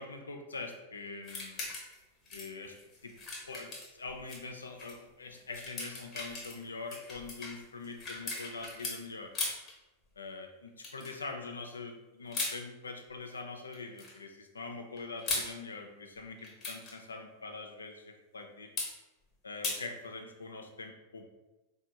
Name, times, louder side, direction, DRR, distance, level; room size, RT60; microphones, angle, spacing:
voice 1, 0.0-1.6 2.3-2.8 3.0-3.1 3.5-9.3 10.2-18.7 19.4-21.3, left 3 dB, 75° left, 4 dB, 0.4 m, -43 dB
sound 1, 1.2-2.0 2.3-4.4 4.8-4.9 5.3-9.0 9.3-9.7 10.8-11.2 12.3-12.6 13.7-14.2 15.0-15.5 16.4-16.9 18.8-18.9 19.6-19.8, left 3 dB, 30° left, 1.0 m, -38 dB
4.3 x 2.8 x 2.2 m, 1.1 s
figure-of-eight pair, 90°, 0 cm